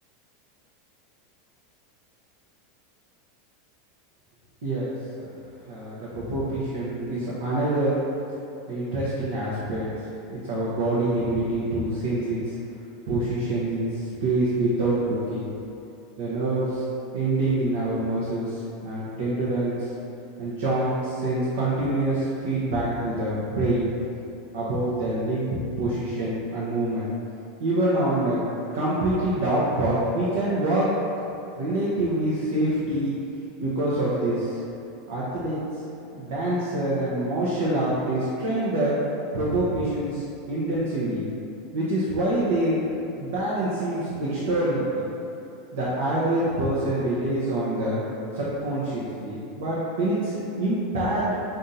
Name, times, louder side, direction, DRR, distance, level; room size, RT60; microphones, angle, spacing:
voice 1, 4.6-4.9 5.7-7.9 8.7-9.9 10.3-12.6 13.1-15.5 16.2-16.8 17.1-19.9 20.4-23.9 24.5-25.5 25.8-27.1 27.6-28.4 28.7-30.9 31.6-33.1 33.6-34.6 35.1-35.8 36.1-39.0 39.3-41.3 41.7-42.8 43.2-45.1 45.7-48.0 48.3-51.4, right 1 dB, 75° right, -8 dB, 0.8 m, -26 dB
3.8 x 2.6 x 4.2 m, 2.8 s
supercardioid pair, 135°, 0 cm